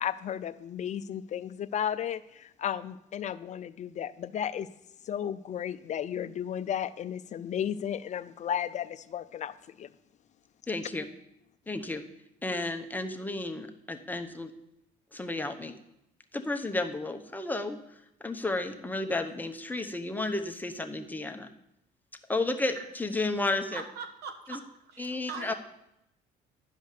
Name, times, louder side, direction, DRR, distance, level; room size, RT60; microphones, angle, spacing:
voice 1, 0.0-4.7 5.0-9.9, left 9 dB, 45° left, 14 dB, 0.4 m, -34 dB
voice 2, 10.7-11.0 11.7-12.0 12.4-14.5 15.1-15.8 16.3-21.5 22.3-23.8 24.5-24.6 25.0-25.5, left 2 dB, 10° left, 5 dB, 0.8 m, -32 dB
voice 3, 23.7-24.6 24.9-25.5, right 5 dB, 80° right, 7 dB, 1.4 m, -41 dB
11.5 x 5.2 x 6.5 m, 0.83 s
cardioid pair, 110°, 17 cm